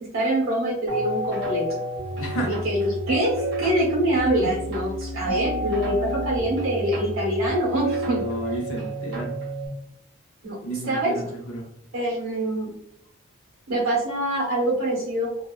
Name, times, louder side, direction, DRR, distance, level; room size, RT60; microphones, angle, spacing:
voice 1, 0.1-1.7 2.5-8.2 10.4-10.6 10.8-11.1 11.9-12.7 13.7-15.4, right 1 dB, 85° right, -3 dB, 1.1 m, -25 dB
sound 1, 0.9-9.7, equal, 60° right, 0.8 m, -30 dB
voice 2, 2.1-2.6 4.4-4.5 8.1-9.3 10.6-11.7, right 1 dB, 90° left, -1 dB, 0.7 m, -32 dB
2.8 x 2.1 x 2.2 m, 0.74 s
head